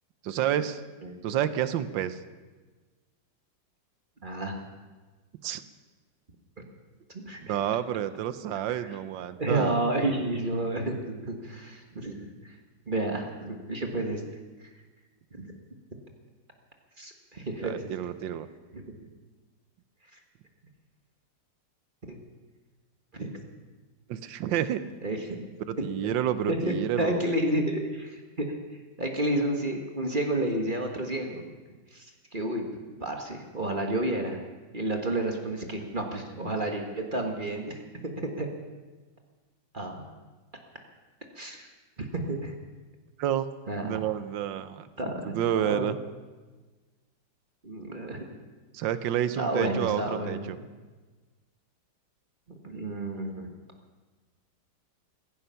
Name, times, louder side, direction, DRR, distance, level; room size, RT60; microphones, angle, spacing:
voice 1, 0.2-0.8 1.2-2.2 5.4-5.6 7.4-9.8 17.6-18.5 24.1-24.8 25.7-27.2 43.2-43.4 43.8-44.9 45.2-46.0 48.7-50.6, right 10 dB, 80° right, 13 dB, 1.5 m, -29 dB
voice 2, 4.2-4.6 7.2-7.6 8.8-9.0 9.4-12.5 12.9-14.2 15.4-15.5 17.0-17.7 18.7-18.8 22.1-22.2 23.2-23.3 25.0-25.4 26.5-28.6 29.0-31.4 31.9-32.1 32.3-32.6 33.0-34.4 34.7-37.8 38.2-38.5 39.7-40.0 41.3-41.7 42.0-42.5 43.7-44.1 45.0-45.9 47.6-48.3 49.4-50.4 52.6-53.5, right 1 dB, 30° right, 2 dB, 1.6 m, -30 dB
16.5 x 15.5 x 5.7 m, 1.3 s
omnidirectional pair, 2.0 m